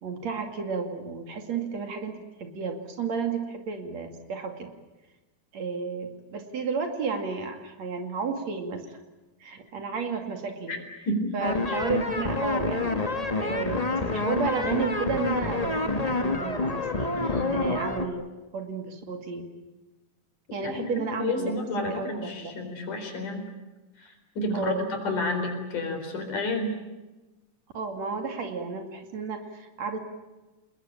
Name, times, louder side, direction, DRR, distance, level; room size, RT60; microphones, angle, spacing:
voice 1, 0.0-4.7 5.5-9.0 9.4-10.8 11.3-13.0 13.4-18.3 18.5-19.5 20.5-22.5 24.5-24.9 27.7-30.0, right 5 dB, 60° right, 5 dB, 3.5 m, -32 dB
sound 1, 11.4-18.1, left 3 dB, 40° left, 0.5 m, -28 dB
voice 2, 17.3-17.6 20.6-20.9 21.2-23.4 24.0-26.7, left 2 dB, 75° left, 4 dB, 5.8 m, -30 dB
28.5 x 20.5 x 8.8 m, 1.1 s
omnidirectional pair, 3.6 m